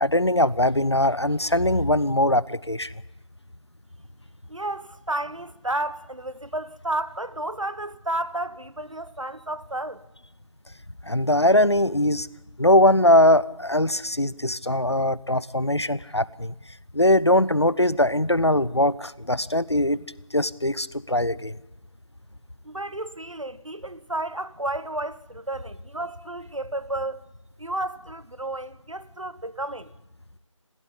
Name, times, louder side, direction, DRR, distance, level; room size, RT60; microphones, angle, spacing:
voice 1, 0.0-2.9 11.0-12.3 12.6-16.5 16.9-20.0 20.3-21.6, left 1 dB, 55° left, 0.7 m, -21 dB
voice 2, 4.5-10.0 22.6-27.2 27.6-29.9, right 1 dB, 70° right, 1.1 m, -32 dB
21.0 x 15.5 x 9.8 m
figure-of-eight pair, 180°, 17 cm